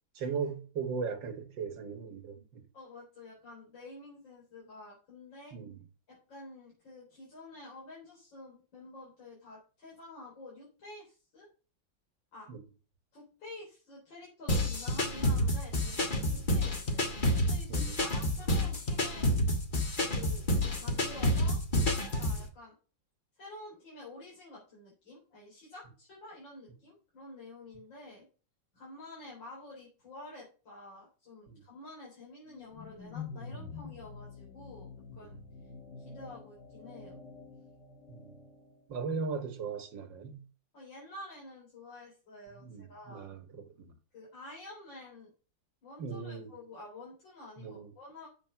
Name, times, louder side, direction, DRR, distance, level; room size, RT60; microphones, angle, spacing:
voice 1, 0.2-2.6 5.5-5.8 12.5-12.6 16.2-16.3 17.7-18.1 31.5-31.6 38.1-38.3 38.9-40.4 42.6-43.9 46.0-46.5 47.6-47.9, right 5 dB, 80° right, 2.1 m, -38 dB
voice 2, 2.7-5.5 6.1-11.5 12.3-12.5 13.1-19.2 20.0-20.4 20.8-21.6 22.2-22.7 23.4-28.3 28.7-34.9 35.2-35.4 36.0-37.2 40.7-43.3 44.1-45.3 45.8-48.3, left 2 dB, 80° left, 4.8 m, -49 dB
sound 1, 14.5-22.4, left 1 dB, 30° left, 1.6 m, -29 dB
sound 2, 32.5-38.8, left 5 dB, 65° left, 2.1 m, -47 dB
7.8 x 6.9 x 5.8 m
omnidirectional pair, 2.0 m